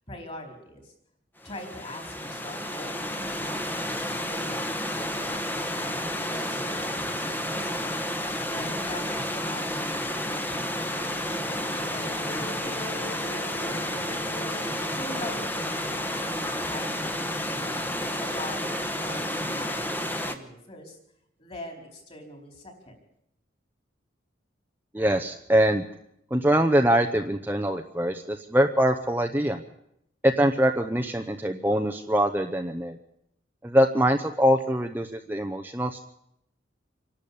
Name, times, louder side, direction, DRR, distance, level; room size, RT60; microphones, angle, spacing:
voice 1, 0.1-0.9 1.4-8.0 8.5-14.6 14.9-17.1 17.4-21.0 21.4-23.0, left 1 dB, 30° left, 3 dB, 4.5 m, -43 dB
Stream / Liquid, 1.4-20.3, left 1 dB, 10° left, 1.2 m, -31 dB
sound 1, 10.9-18.3, left 2 dB, 85° left, 3.8 m, -46 dB
voice 2, 24.9-25.8 26.3-29.6 30.2-33.0 33.6-36.0, equal, 10° right, 5 dB, 0.7 m, -23 dB
26.5 x 12.0 x 8.6 m, 0.76 s
head